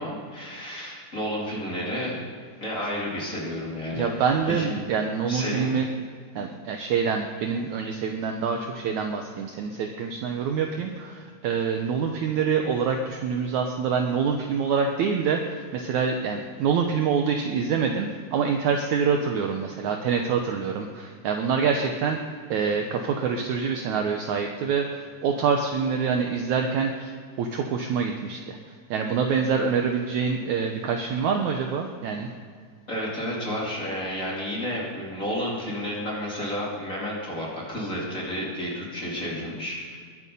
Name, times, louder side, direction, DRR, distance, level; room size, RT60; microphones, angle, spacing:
voice 1, 0.0-2.2 2.6-4.1 4.4-4.7 5.3-5.8 32.9-40.0, equal, 25° left, -4 dB, 2.5 m, -31 dB
voice 2, 3.9-5.9 6.4-22.2 22.5-27.1 27.4-28.6 28.9-32.3, right 6 dB, 75° right, 4 dB, 1.8 m, -26 dB
21.5 x 8.5 x 5.4 m, 2.1 s
omnidirectional pair, 4.3 m